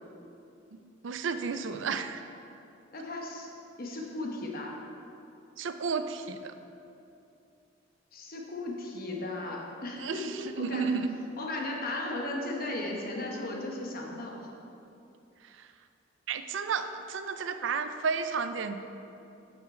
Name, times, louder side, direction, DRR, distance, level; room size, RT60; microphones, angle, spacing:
voice 1, 0.7-2.2 5.6-6.5 10.0-11.2 15.4-15.7 16.3-18.8, right 5 dB, 70° right, 9 dB, 0.4 m, -32 dB
voice 2, 2.9-3.5 3.8-4.8 8.1-10.9 11.4-14.5, left 2 dB, 50° left, 0 dB, 1.0 m, -36 dB
7.6 x 5.6 x 4.4 m, 2.7 s
head